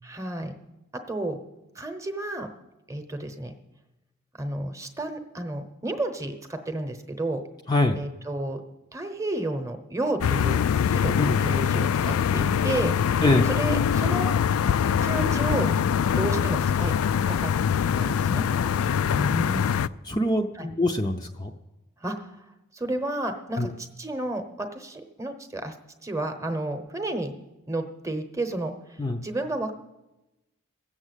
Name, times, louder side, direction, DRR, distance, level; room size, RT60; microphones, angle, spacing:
voice 1, 0.0-0.5 1.1-1.4 1.7-2.5 2.9-3.5 4.4-7.4 8.0-8.6 8.9-11.2 11.4-13.2 13.6-14.3 15.0-15.7 16.2-16.9 17.3-17.5 18.0-18.4 20.6-20.7 22.0-22.3 22.7-25.7 26.0-27.3 27.7-28.7 29.2-29.7, right 2 dB, 15° right, 6 dB, 0.9 m, -31 dB
voice 2, 7.7-8.0 11.2-11.4 13.2-13.5 19.1-19.7 20.0-21.5 23.6-23.7 29.0-29.2, left 2 dB, 20° left, 3 dB, 0.5 m, -25 dB
sound 1, 10.2-19.9, left 8 dB, 85° left, 0.4 m, -23 dB
16.0 x 7.4 x 8.2 m, 1.0 s
head